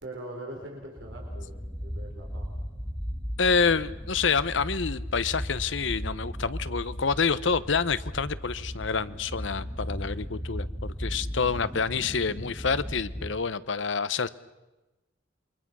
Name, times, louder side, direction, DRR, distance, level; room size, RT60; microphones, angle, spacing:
voice 1, 0.0-2.8, right 1 dB, 70° right, 0 dB, 4.6 m, -42 dB
sound 1, 1.0-13.3, equal, 5° left, 2.4 m, -36 dB
voice 2, 3.4-14.3, left 5 dB, 70° left, 15 dB, 0.9 m, -27 dB
28.0 x 23.5 x 6.2 m, 1.1 s
head